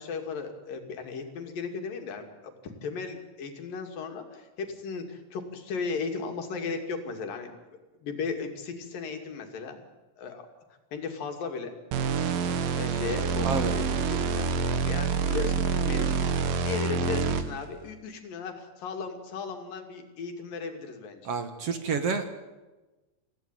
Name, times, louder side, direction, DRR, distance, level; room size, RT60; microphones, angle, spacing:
voice 1, 0.0-7.6 8.0-9.8 10.2-10.5 10.9-11.7 12.7-21.3, left 4 dB, 85° left, 5 dB, 4.2 m, -36 dB
sound 1, 11.9-17.7, right 5 dB, 80° right, 3.2 m, -27 dB
voice 2, 13.4-13.7 21.2-22.5, right 5 dB, 50° right, 8 dB, 2.3 m, -29 dB
27.0 x 16.0 x 9.2 m, 1.1 s
omnidirectional pair, 3.9 m